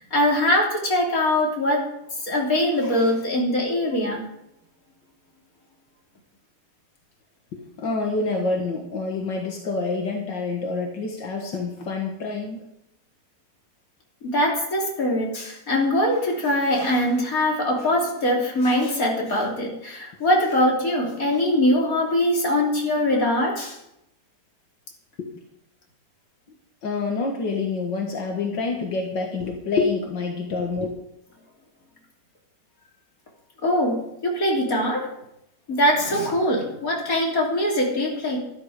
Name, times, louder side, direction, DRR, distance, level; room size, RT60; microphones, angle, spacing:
voice 1, 0.0-1.8 2.2-4.2 14.2-23.8 33.6-35.1 35.7-38.4, left 1 dB, 50° left, -1 dB, 3.7 m, -22 dB
voice 2, 7.5-12.6 25.2-25.3 26.8-30.9, left 3 dB, 85° left, 2 dB, 2.3 m, -27 dB
13.0 x 12.5 x 5.0 m, 0.81 s
omnidirectional pair, 1.9 m